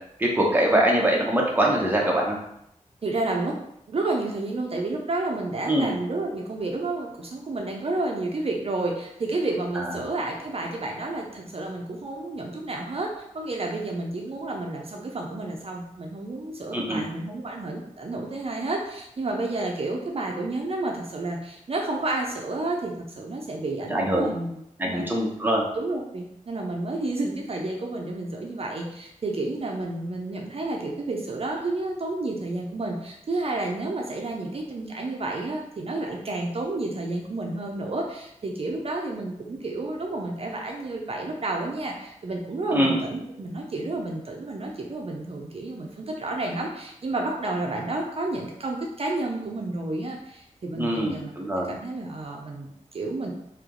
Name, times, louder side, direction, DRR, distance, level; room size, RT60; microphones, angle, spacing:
voice 1, 0.2-2.4 5.7-5.9 9.8-9.9 16.7-17.0 23.9-24.3 24.8-25.7 42.7-43.0 50.8-51.7, right 1 dB, 15° right, -2 dB, 0.9 m, -23 dB
voice 2, 3.0-3.6 3.9-25.1 25.7-51.3 51.7-53.3, right 2 dB, 50° right, 0 dB, 0.5 m, -30 dB
3.3 x 2.8 x 3.7 m, 0.77 s
wide cardioid pair, 105°, 13 cm